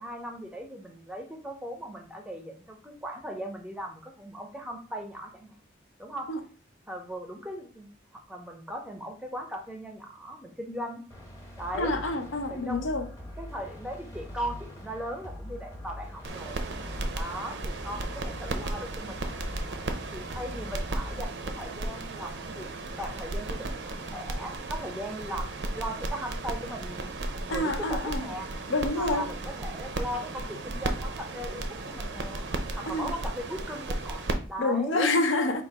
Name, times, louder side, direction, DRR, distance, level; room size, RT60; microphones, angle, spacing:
voice 1, 0.0-5.5 6.0-6.3 6.9-11.0 11.6-12.0 12.5-12.8 13.4-16.6 17.1-19.2 20.1-22.7 23.0-27.1 27.5-28.5 29.0-32.5 32.7-35.1, equal, 5° right, 0.5 m, -38 dB
sound 1, 11.1-21.3, left 1 dB, 15° left, 0.9 m, -43 dB
voice 2, 11.8-13.1 27.5-28.2 28.7-29.3 32.9-33.1 34.6-35.6, left 2 dB, 80° left, 0.6 m, -27 dB
sound 2, 16.2-34.3, right 2 dB, 65° right, 0.5 m, -35 dB
3.8 x 2.4 x 4.6 m
head